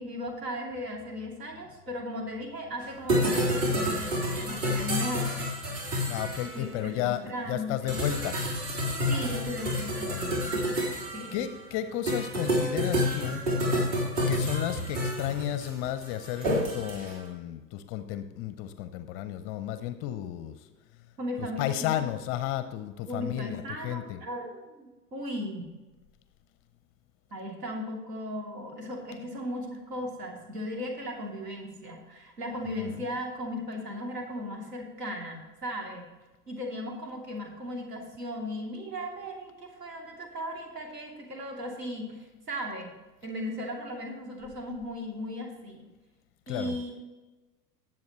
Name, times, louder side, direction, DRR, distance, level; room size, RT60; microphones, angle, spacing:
voice 1, 0.0-5.4 6.5-8.0 9.0-10.8 11.1-11.4 21.2-22.1 23.1-25.7 27.3-36.1 36.5-42.9 43.2-45.9 46.5-47.0, left 1 dB, 70° right, 0 dB, 3.0 m, -37 dB
sound 1, 2.8-2.9 3.1-6.6 7.9-11.5 12.1-17.1, equal, 50° right, 3.8 m, -29 dB
voice 2, 6.1-8.4 10.1-10.6 11.3-13.4 14.3-20.7 21.4-24.2 32.8-33.0 46.5-46.8, left 12 dB, 30° left, 11 dB, 0.5 m, -33 dB
18.0 x 7.4 x 3.1 m, 1.2 s
figure-of-eight pair, 90°, 48 cm